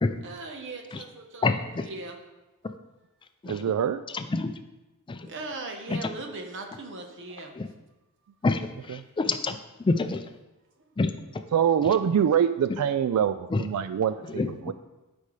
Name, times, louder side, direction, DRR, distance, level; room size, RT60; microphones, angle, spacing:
voice 1, 0.2-2.2 5.2-7.5, right 3 dB, 60° right, 3 dB, 1.0 m, -39 dB
voice 2, 1.4-1.9 2.6-2.7 3.4-3.6 4.1-4.6 5.1-5.3 5.9-6.1 7.5-7.7 8.4-10.2 11.0-11.4 13.5-13.6 14.3-14.5, left 3 dB, 20° left, 8 dB, 0.4 m, -28 dB
voice 3, 3.5-4.0 11.5-14.7, right 8 dB, 80° right, 12 dB, 0.3 m, -24 dB
12.0 x 5.4 x 3.3 m, 1.1 s
head